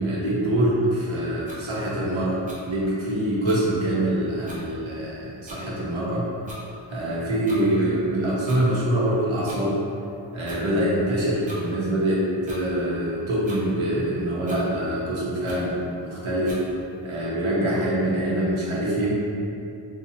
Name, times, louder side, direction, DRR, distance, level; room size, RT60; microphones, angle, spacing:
voice 1, 0.0-6.2 6.9-9.7 10.3-16.6 17.0-19.1, right 1 dB, 75° right, -6 dB, 0.8 m, -24 dB
sound 1, 1.5-1.6 2.5-2.6 3.4-3.6 4.1-4.2 4.4-4.6 5.5-5.6 6.4-6.6 7.4-7.6 8.5-8.6 9.5-9.6 10.5-10.6 11.5-11.6 12.4-12.6 13.4-13.6 14.5-14.6 15.5-15.6 16.4-16.6, equal, 15° right, 0.6 m, -41 dB
2.7 x 2.3 x 2.6 m, 2.7 s
wide cardioid pair, 65°, 48 cm